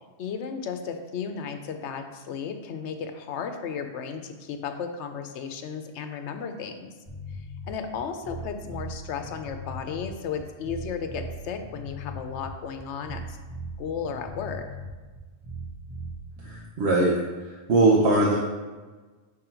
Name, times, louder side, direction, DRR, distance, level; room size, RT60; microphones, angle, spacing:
voice 1, 0.2-6.9 7.7-13.2 13.8-14.6, left 6 dB, 85° left, 7 dB, 0.9 m, -34 dB
sound 1, 7.1-16.7, right 1 dB, 20° right, 1.3 m, -39 dB
voice 2, 16.4-17.1 17.5-18.4, right 2 dB, 75° right, -4 dB, 1.1 m, -21 dB
6.1 x 3.9 x 4.4 m, 1.3 s
omnidirectional pair, 1.1 m